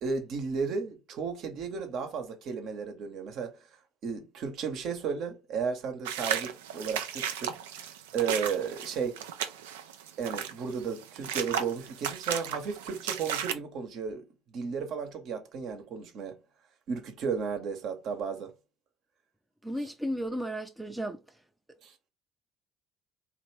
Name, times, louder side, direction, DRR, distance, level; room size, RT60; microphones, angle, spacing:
voice 1, 0.0-3.6 4.0-7.6 8.1-9.2 10.2-16.4 16.9-18.5 21.8-21.9, right 5 dB, 55° right, 0.9 m, -34 dB
sound 1, 6.1-13.5, right 9 dB, 75° right, 0.4 m, -35 dB
voice 2, 19.6-21.2, equal, 5° right, 0.5 m, -34 dB
3.1 x 2.5 x 3.1 m
figure-of-eight pair, 55°, 0 cm